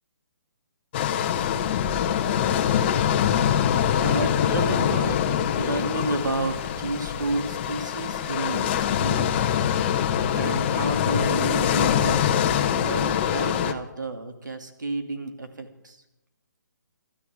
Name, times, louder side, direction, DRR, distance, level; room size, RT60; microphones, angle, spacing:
sound 1, 0.9-13.7, left 9 dB, 35° left, 1.3 m, -24 dB
voice 1, 4.0-5.2 5.5-9.3 10.3-12.3 12.8-16.0, right 2 dB, 75° right, 6 dB, 2.9 m, -31 dB
28.5 x 13.0 x 3.8 m, 0.88 s
figure-of-eight pair, 135°, 10 cm